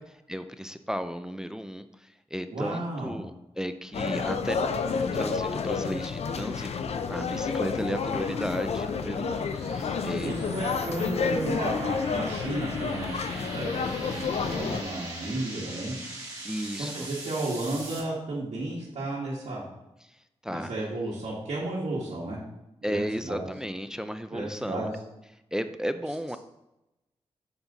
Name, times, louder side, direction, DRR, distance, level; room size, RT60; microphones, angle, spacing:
voice 1, 0.3-10.6 14.6-15.1 16.4-17.1 20.0-20.7 22.8-24.9 25.5-26.4, equal, 5° right, 10 dB, 0.3 m, -35 dB
voice 2, 2.5-3.2 10.2-15.9 16.8-19.6 20.5-22.4 22.9-23.4 24.3-24.9, right 2 dB, 80° right, -8 dB, 1.9 m, -33 dB
sound 1, 3.9-14.8, left 5 dB, 70° left, 0.5 m, -30 dB
sound 2, 6.6-18.0, right 2 dB, 30° right, 2.4 m, -42 dB
7.1 x 5.2 x 4.0 m, 0.92 s
wide cardioid pair, 140°, 11 cm